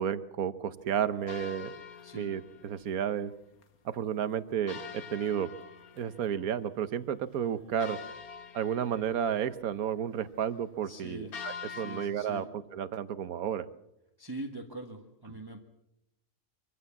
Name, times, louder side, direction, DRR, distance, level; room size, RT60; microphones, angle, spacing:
voice 1, 0.0-1.7 2.1-3.3 3.8-5.5 5.9-8.0 8.5-13.7, right 8 dB, 70° right, 13 dB, 1.4 m, -32 dB
sound 1, 1.3-3.0 3.3-3.4 3.6-3.7 4.7-6.6 7.0-7.1 7.8-9.6 11.3-12.1, left 6 dB, 70° left, 1.8 m, -45 dB
voice 2, 10.8-11.4 11.7-12.5 14.2-15.6, right 1 dB, 15° right, 4 dB, 1.4 m, -43 dB
24.5 x 15.5 x 7.2 m, 0.87 s
omnidirectional pair, 1.6 m